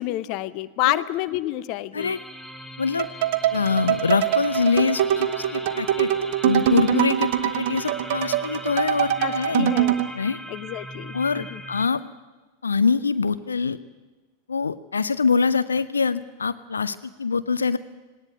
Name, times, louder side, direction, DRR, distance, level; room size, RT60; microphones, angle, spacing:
voice 1, 0.0-2.1 6.9-7.0 9.2-9.3 9.6-10.0 10.5-11.6, left 16 dB, 40° left, 16 dB, 0.8 m, -28 dB
sound 1, 2.0-11.9, equal, 5° left, 1.1 m, -40 dB
sound 2, 3.0-10.1, right 12 dB, 50° right, 1.1 m, -23 dB
voice 2, 3.5-6.1 6.4-9.7 10.1-10.4 11.1-12.0 12.6-13.8 14.5-17.8, left 5 dB, 75° left, 13 dB, 0.7 m, -24 dB
19.0 x 18.0 x 9.2 m, 1.2 s
figure-of-eight pair, 90°, 0 cm